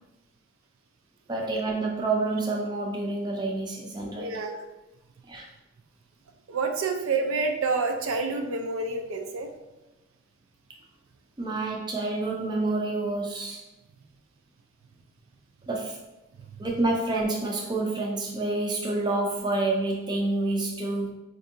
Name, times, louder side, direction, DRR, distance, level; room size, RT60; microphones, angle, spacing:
voice 1, 1.3-4.5 5.3-5.5 11.4-13.6 15.7-16.0 16.6-21.1, right 2 dB, 20° right, -1 dB, 0.4 m, -28 dB
voice 2, 4.2-4.7 6.5-9.5, right 4 dB, 80° right, 4 dB, 0.5 m, -28 dB
4.4 x 2.6 x 2.6 m, 0.98 s
head